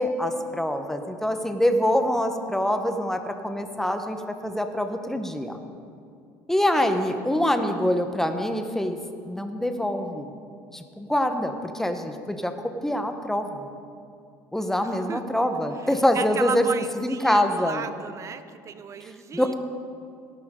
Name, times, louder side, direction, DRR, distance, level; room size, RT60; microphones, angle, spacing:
voice 1, 0.0-5.6 6.5-9.0 9.3-10.3 10.7-12.5 12.8-13.7 14.5-16.7 17.0-17.8 19.0-19.5, left 1 dB, 5° left, 6 dB, 1.1 m, -25 dB
voice 2, 14.8-15.2 15.8-19.5, right 6 dB, 35° right, 11 dB, 0.8 m, -35 dB
17.5 x 11.5 x 3.8 m, 2.4 s
supercardioid pair, 105°, 9 cm